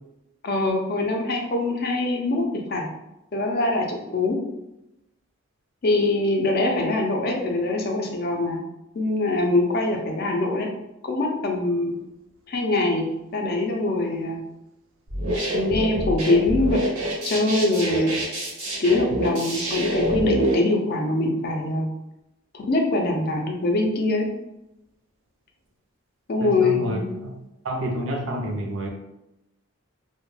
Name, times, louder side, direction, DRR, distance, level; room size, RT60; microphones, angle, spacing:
voice 1, 0.4-2.9 3.3-4.4 5.8-8.6 8.9-10.7 11.0-11.9 12.5-14.4 15.5-16.8 17.2-18.2 18.8-21.9 22.5-24.3 26.3-27.1, left 2 dB, 45° left, 1 dB, 0.4 m, -23 dB
sound 1, 15.1-20.5, right 1 dB, 85° right, 0.8 m, -26 dB
voice 2, 26.4-27.0 27.2-27.3 27.6-28.9, right 1 dB, 65° right, 2 dB, 0.5 m, -28 dB
2.2 x 2.1 x 3.1 m, 0.90 s
head